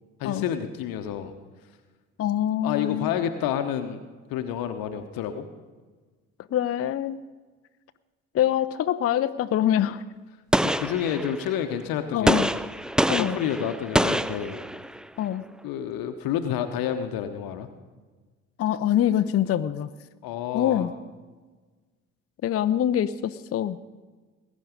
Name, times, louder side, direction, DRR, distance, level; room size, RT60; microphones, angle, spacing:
voice 1, 0.2-1.3 2.6-4.0 4.3-5.5 10.6-12.5 13.2-14.6 15.6-17.7 20.2-20.9, left 9 dB, 60° left, 8 dB, 1.0 m, -29 dB
voice 2, 2.2-3.1 6.5-7.2 8.3-10.0 12.1-12.5 13.1-13.4 15.2-15.4 18.6-19.9 20.5-20.9 22.4-23.8, left 11 dB, 35° left, 11 dB, 0.6 m, -24 dB
Gunshot gunfire, 10.5-11.6 12.3-15.0, right 1 dB, ahead, 0.3 m, -25 dB
20.5 x 9.5 x 5.2 m, 1.4 s
figure-of-eight pair, 50°, 39 cm